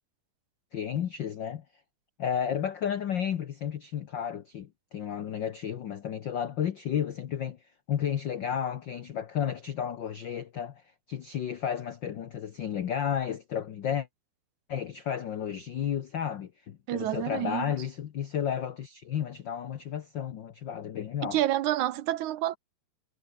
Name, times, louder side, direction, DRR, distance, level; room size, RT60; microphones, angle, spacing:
voice 1, 0.7-1.6 2.2-7.6 7.9-10.8 11.1-14.1 14.7-21.4, left 9 dB, 90° left, 1.0 m, -32 dB
voice 2, 16.9-17.6 21.2-22.6, right 13 dB, 75° right, 2.3 m, -28 dB
omnidirectional pair, 3.6 m